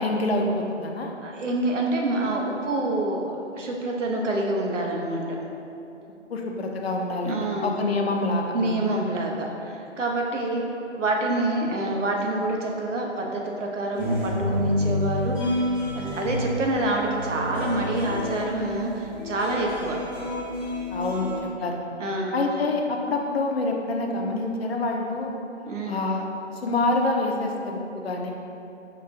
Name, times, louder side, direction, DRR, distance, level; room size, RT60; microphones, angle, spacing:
voice 1, 0.0-1.1 6.3-8.8 20.9-21.8 22.3-25.4 25.9-26.3 26.5-28.3, left 2 dB, 60° left, 2 dB, 0.5 m, -26 dB
voice 2, 1.2-5.2 7.2-7.7 8.5-10.7 10.9-15.4 15.7-20.1 22.0-22.4 25.7-26.0, right 2 dB, 90° right, 0 dB, 0.7 m, -27 dB
sound 1, 13.9-21.4, left 1 dB, 5° left, 0.6 m, -29 dB
5.5 x 2.3 x 2.5 m, 2.8 s
hypercardioid pair, 165°, 36 cm